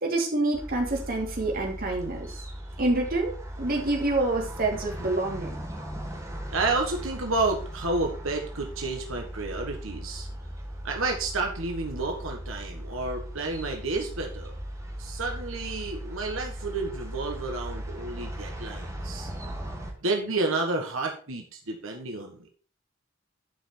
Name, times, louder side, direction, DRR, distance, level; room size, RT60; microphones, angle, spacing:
voice 1, 0.0-2.3 2.8-5.6, right 2 dB, 50° right, 0 dB, 2.7 m, -27 dB
sound 1, 0.5-19.9, equal, 15° right, 1.9 m, -38 dB
voice 2, 6.5-10.3 10.8-14.5 15.0-19.3 20.0-22.5, right 3 dB, 90° right, 2 dB, 1.5 m, -30 dB
11.0 x 5.8 x 4.4 m, 0.40 s
head